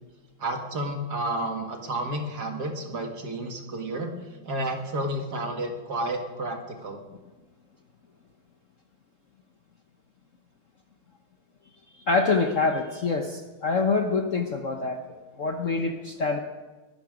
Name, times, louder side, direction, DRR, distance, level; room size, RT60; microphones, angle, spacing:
voice 1, 0.4-4.1 4.4-7.0, right 1 dB, 50° right, 3 dB, 2.3 m, -31 dB
voice 2, 11.9-15.0 15.3-16.4, left 4 dB, 50° left, 4 dB, 1.1 m, -25 dB
22.0 x 13.0 x 5.1 m, 1.2 s
omnidirectional pair, 2.2 m